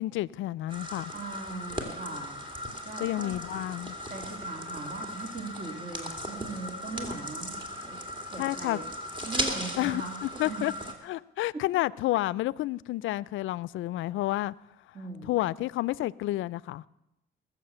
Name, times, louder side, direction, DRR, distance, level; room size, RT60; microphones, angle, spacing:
voice 1, 0.0-1.1 3.0-4.0 8.4-8.8 9.8-10.7 11.0-14.5 15.3-16.8, left 16 dB, 80° left, 20 dB, 0.4 m, -30 dB
sound 1, 0.7-10.9, equal, 25° right, 2.6 m, -37 dB
voice 2, 1.1-2.4 2.8-3.3 4.1-8.0 8.3-8.9 9.2-10.7 11.5-11.6 14.9-15.4, right 3 dB, 45° right, 2 dB, 2.5 m, -39 dB
20.5 x 7.3 x 6.8 m, 0.91 s
cardioid pair, 90°, 20 cm